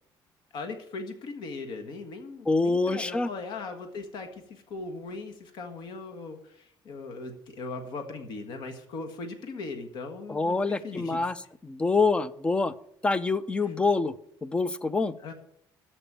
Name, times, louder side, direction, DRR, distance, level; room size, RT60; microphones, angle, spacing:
voice 1, 0.5-11.2 13.6-13.7 15.2-15.3, left 3 dB, 55° left, 5 dB, 1.6 m, -39 dB
voice 2, 2.5-3.3 10.3-11.4 11.6-12.7 13.0-14.1 14.4-15.2, left 3 dB, 10° left, 16 dB, 0.5 m, -26 dB
14.0 x 5.4 x 8.8 m, 0.73 s
cardioid pair, 160°, 9 cm